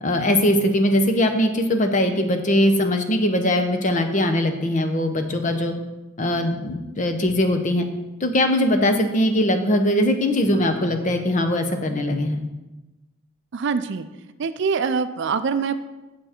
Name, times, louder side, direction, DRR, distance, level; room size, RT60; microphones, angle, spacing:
voice 1, 0.0-5.7 6.2-7.8 8.2-12.4, left 1 dB, 35° left, 6 dB, 0.8 m, -21 dB
voice 2, 13.5-14.1 14.4-15.7, right 5 dB, 55° right, 11 dB, 0.4 m, -24 dB
7.6 x 7.0 x 4.4 m, 1.1 s
head